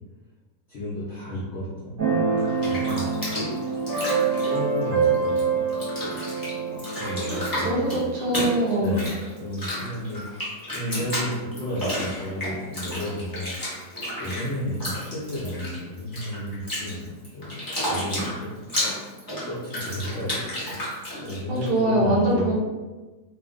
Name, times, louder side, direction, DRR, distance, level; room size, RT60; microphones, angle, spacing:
voice 1, 0.7-1.9 2.6-3.1 4.5-6.1 6.7-8.0 8.7-10.2 10.7-13.5 14.2-17.5 17.9-18.5 18.8-18.9 19.4-20.8 21.2-22.5, equal, 70° left, -8 dB, 0.6 m, -32 dB
Keyboard (musical), 2.0-9.5, right 5 dB, 40° right, 0.9 m, -26 dB
Bathtub (filling or washing), 2.4-5.4 5.7-21.7, equal, 25° left, 0.4 m, -32 dB
voice 2, 7.3-9.0 21.5-22.5, right 1 dB, 70° right, -5 dB, 0.5 m, -24 dB
2.6 x 2.4 x 2.5 m, 1.2 s
omnidirectional pair, 1.9 m